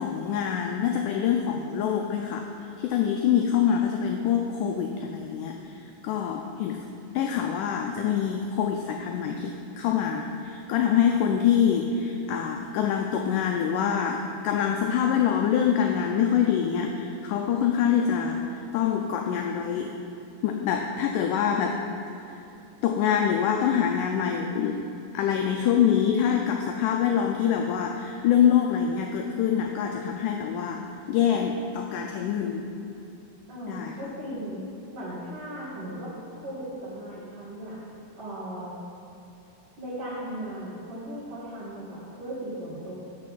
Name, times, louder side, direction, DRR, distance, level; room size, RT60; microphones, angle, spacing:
voice 1, 0.0-2.5 2.8-6.8 7.2-19.9 20.4-21.8 22.3-22.4 22.8-24.9 25.1-30.8 31.1-32.6 33.7-33.9, left 8 dB, 90° left, 3 dB, 1.8 m, -25 dB
voice 2, 33.5-34.6 34.9-37.8 38.2-38.8 39.8-42.9, right 1 dB, 40° right, -13 dB, 2.7 m, -37 dB
6.5 x 6.5 x 7.3 m, 2.8 s
omnidirectional pair, 4.3 m